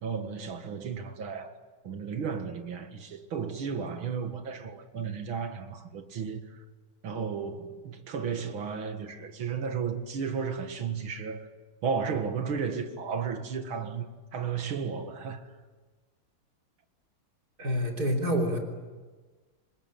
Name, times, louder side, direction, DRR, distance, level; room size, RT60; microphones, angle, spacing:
voice 1, 0.0-1.6 1.8-6.6 7.0-11.5 11.8-14.1 14.3-15.4, right 6 dB, 70° right, 2.6 m, -33 dB
voice 2, 17.6-18.6, equal, 45° right, 4.0 m, -27 dB
27.0 x 21.0 x 9.2 m
omnidirectional pair, 2.4 m